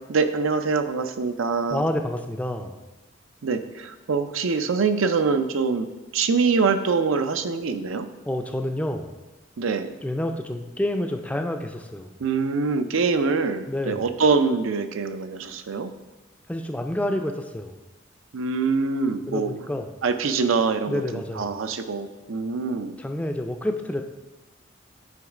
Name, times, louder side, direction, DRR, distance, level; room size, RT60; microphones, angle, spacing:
voice 1, 0.0-1.9 3.4-5.9 6.1-8.1 9.6-9.9 12.2-15.9 18.3-19.5 20.0-23.0, right 4 dB, 90° right, 8 dB, 0.5 m, -24 dB
voice 2, 1.7-2.8 8.3-9.1 10.0-12.2 13.7-14.1 16.5-17.8 19.3-19.9 20.9-21.6 23.0-24.0, left 1 dB, 5° left, 5 dB, 0.3 m, -28 dB
9.3 x 3.1 x 4.9 m, 1.1 s
head